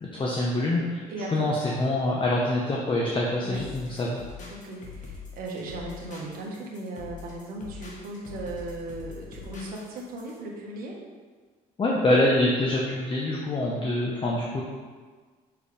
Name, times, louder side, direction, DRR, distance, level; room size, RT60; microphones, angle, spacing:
voice 1, 0.0-1.0 1.3-4.2 11.8-14.6, left 1 dB, 30° left, -3 dB, 1.0 m, -25 dB
voice 2, 1.1-1.5 3.4-3.7 4.5-11.0, right 2 dB, 65° right, -2 dB, 1.4 m, -37 dB
sound 1, 3.5-10.4, left 5 dB, 50° left, 1.7 m, -43 dB
6.9 x 4.4 x 3.5 m, 1.5 s
supercardioid pair, 90°, 17 cm